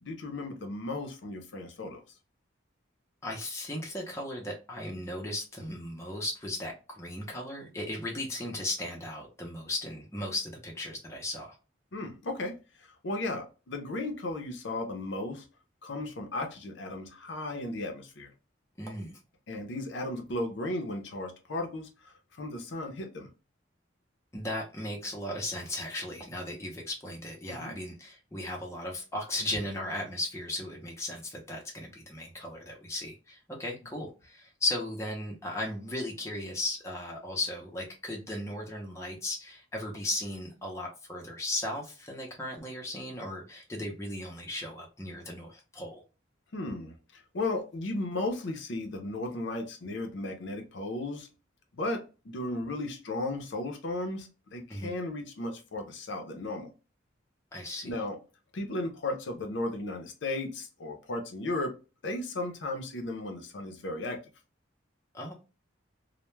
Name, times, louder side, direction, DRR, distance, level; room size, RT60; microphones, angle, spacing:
voice 1, 0.0-2.0 11.9-12.6 13.0-15.4 15.8-18.3 19.5-23.3 27.5-27.7 46.5-51.3 51.7-56.7 57.8-58.2 58.5-61.7 62.0-64.2, left 2 dB, 65° left, 0.5 m, -35 dB
voice 2, 3.2-11.5 18.8-19.1 24.3-46.0 54.7-54.9 57.5-58.0 65.1-65.3, left 1 dB, 15° left, 0.6 m, -36 dB
2.2 x 2.1 x 3.0 m
head